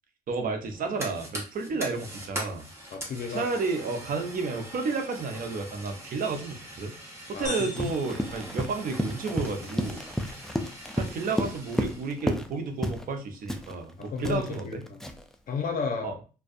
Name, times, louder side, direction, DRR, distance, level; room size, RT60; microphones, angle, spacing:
voice 1, 0.3-2.7 3.3-6.9 7.4-10.0 10.9-14.8 16.0-16.1, right 4 dB, 55° right, 5 dB, 0.6 m, -31 dB
Fire, 0.6-12.2, right 1 dB, 15° right, 1.0 m, -42 dB
voice 2, 2.9-3.5 7.3-7.9 8.3-8.4 14.0-15.1 15.5-16.2, left 5 dB, 55° left, 4 dB, 0.7 m, -33 dB
sound 1, 7.4-9.4, left 3 dB, 25° left, 0.9 m, -41 dB
Run, 7.8-12.5 12.8-13.1 13.5-15.3, equal, 5° left, 0.3 m, -32 dB
2.6 x 2.2 x 2.4 m, 0.35 s
cardioid pair, 75°, 17 cm